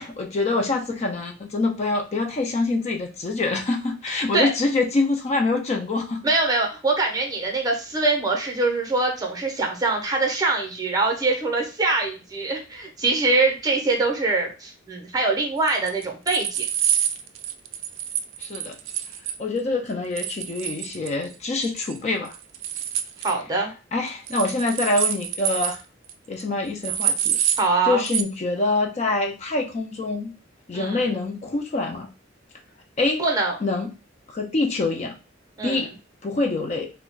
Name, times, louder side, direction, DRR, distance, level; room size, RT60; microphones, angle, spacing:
voice 1, 0.0-6.2 18.4-18.7 19.4-22.4 23.9-25.8 26.3-27.4 27.8-30.4 30.7-32.1 33.0-33.2 33.6-33.9 34.3-35.1 35.6-35.9 36.2-36.9, left 3 dB, 35° left, 3 dB, 0.4 m, -25 dB
voice 2, 6.2-16.6 23.2-23.7 27.6-28.0 30.7-31.0 33.2-33.6 35.6-35.9, right 3 dB, 20° right, 1 dB, 0.6 m, -23 dB
sound 1, 15.7-19.4 20.2-21.3 21.6-22.0 22.3-23.3 24.3-25.8 26.1-26.2 26.4-26.5 26.8-27.7 28.0-28.2, right 9 dB, 85° right, 0.3 m, -27 dB
2.3 x 2.1 x 3.8 m, 0.32 s
head